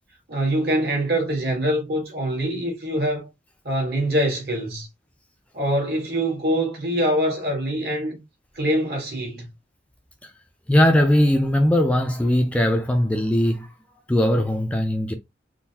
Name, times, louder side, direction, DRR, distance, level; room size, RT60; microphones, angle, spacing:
voice 1, 0.3-3.3 3.6-4.9 5.5-8.2 8.5-9.4, right 1 dB, 55° right, 1.5 m, -24 dB
voice 2, 10.7-13.7 14.1-15.1, left 1 dB, 5° left, 0.3 m, -19 dB
3.7 x 2.5 x 2.7 m
head